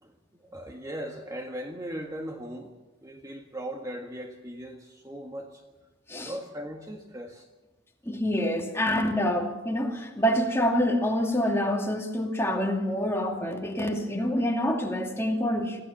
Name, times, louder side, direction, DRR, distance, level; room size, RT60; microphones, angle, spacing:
voice 1, 0.0-2.7 3.0-5.6 6.2-7.5, right 1 dB, 15° right, 1.6 m, -38 dB
voice 2, 8.0-15.8, equal, 15° left, 2.6 m, -26 dB
25.0 x 15.5 x 7.2 m
head